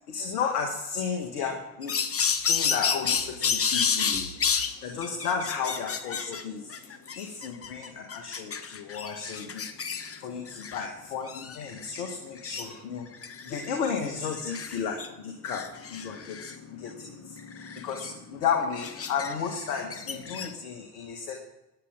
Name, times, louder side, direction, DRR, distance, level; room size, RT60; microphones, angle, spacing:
voice 1, 0.1-1.9 2.4-4.3 4.8-13.1 13.4-15.6 15.9-16.4 16.7-21.4, left 6 dB, 70° left, 3 dB, 1.8 m, -33 dB
sound 1, 1.8-4.7 5.0-6.4 6.7-10.2 10.5-10.9 11.3-12.1 12.4-12.7 13.1-13.7 14.3-15.1 15.5-20.5, left 6 dB, 30° left, 1.2 m, -31 dB
21.5 x 9.2 x 3.8 m, 0.94 s
figure-of-eight pair, 55°, 48 cm